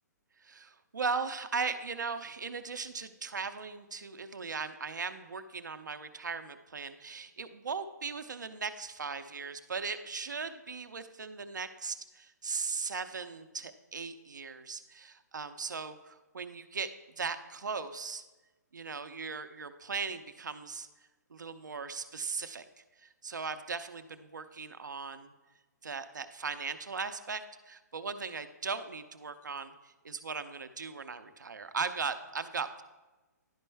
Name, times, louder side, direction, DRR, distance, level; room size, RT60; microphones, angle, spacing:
voice 1, 0.4-16.9 17.2-18.2 18.7-20.9 21.3-22.6 23.0-25.3 25.8-32.8, right 5 dB, 80° right, 9 dB, 0.6 m, -38 dB
11.0 x 4.4 x 3.3 m, 1.1 s
figure-of-eight pair, 130°, 10 cm